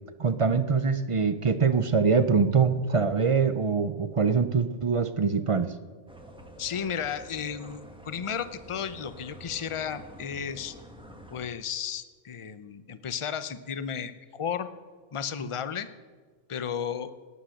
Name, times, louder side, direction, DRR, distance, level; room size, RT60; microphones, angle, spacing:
voice 1, 0.2-5.7, right 5 dB, 45° right, 11 dB, 0.4 m, -24 dB
sound 1, 6.1-11.5, right 1 dB, 5° right, 1.4 m, -48 dB
voice 2, 6.6-10.7 11.3-14.7 15.1-15.9 16.5-17.1, left 7 dB, 35° left, 12 dB, 0.6 m, -33 dB
18.0 x 10.0 x 6.4 m, 1.5 s
omnidirectional pair, 1.3 m